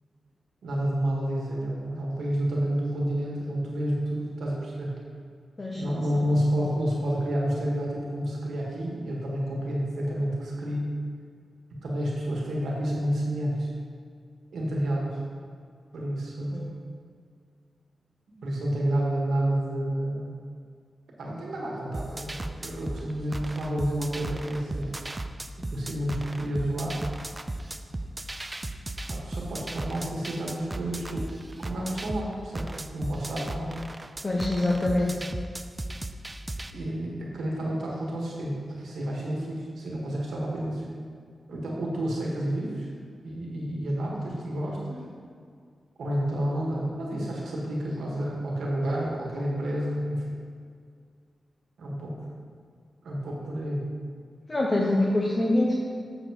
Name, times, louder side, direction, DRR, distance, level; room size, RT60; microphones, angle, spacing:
voice 1, 0.6-4.9 5.7-10.9 11.8-13.7 14.5-15.2 15.9-16.7 18.4-20.3 21.2-24.9 25.6-27.0 29.1-31.3 31.6-33.7 36.7-40.9 41.5-42.9 43.2-45.0 46.0-50.4 51.8-52.1 53.0-53.9, right 1 dB, 90° right, -3 dB, 1.5 m, -30 dB
sound 1, 21.9-36.7, right 2 dB, 25° right, 0.4 m, -36 dB
voice 2, 34.2-35.3 54.5-55.7, left 1 dB, 35° left, -2 dB, 0.8 m, -25 dB
7.6 x 6.4 x 3.0 m, 2.2 s
cardioid pair, 55°, 0 cm